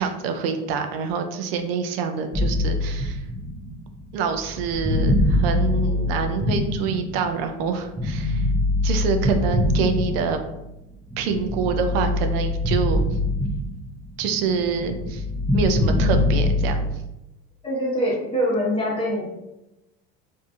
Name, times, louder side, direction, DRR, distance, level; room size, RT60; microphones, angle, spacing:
voice 1, 0.0-3.2 4.1-8.5 8.8-10.4 11.2-13.0 14.2-15.2 15.5-16.9, right 5 dB, 85° right, 6 dB, 0.5 m, -26 dB
sound 1, 2.3-7.4 8.0-10.6 11.1-14.0 14.2-16.9, left 1 dB, 10° right, 0.5 m, -23 dB
voice 2, 17.6-19.3, equal, 20° left, -4 dB, 1.1 m, -24 dB
2.6 x 2.5 x 2.4 m, 0.93 s
supercardioid pair, 100°, 29 cm